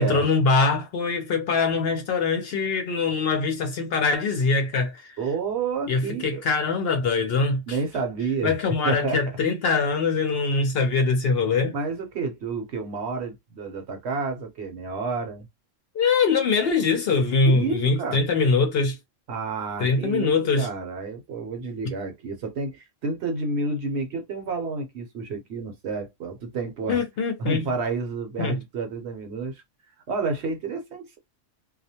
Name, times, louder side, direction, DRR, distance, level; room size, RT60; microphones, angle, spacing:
voice 1, 0.0-5.2 5.9-7.8 8.4-11.7 15.9-19.0 19.8-20.7 26.9-27.7 28.4-28.6, left 4 dB, 60° left, 0.7 m, -23 dB
voice 2, 5.2-6.4 7.7-8.6 8.8-9.2 11.7-15.5 17.5-18.2 19.3-27.0 27.4-29.6 30.1-31.2, right 4 dB, 65° right, 1.0 m, -30 dB
2.4 x 2.1 x 2.7 m
omnidirectional pair, 1.3 m